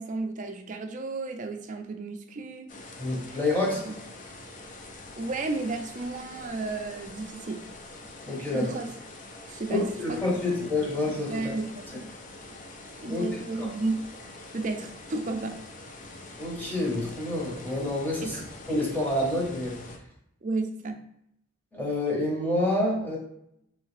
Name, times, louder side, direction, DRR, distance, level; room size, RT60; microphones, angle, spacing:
voice 1, 0.0-2.7 3.9-4.0 5.2-7.6 8.5-8.9 9.5-10.2 11.3-12.1 13.0-14.0 14.5-15.6 18.2-18.5 20.4-21.0, right 3 dB, 40° right, 5 dB, 0.4 m, -33 dB
sound 1, 2.7-20.0, left 2 dB, 40° left, 0.5 m, -45 dB
voice 2, 3.0-3.8 8.3-8.7 9.7-11.5 13.0-13.2 13.6-13.7 16.4-18.4 18.7-19.8 21.7-23.2, left 2 dB, 10° left, -4 dB, 1.1 m, -28 dB
3.4 x 3.1 x 3.3 m, 0.76 s
head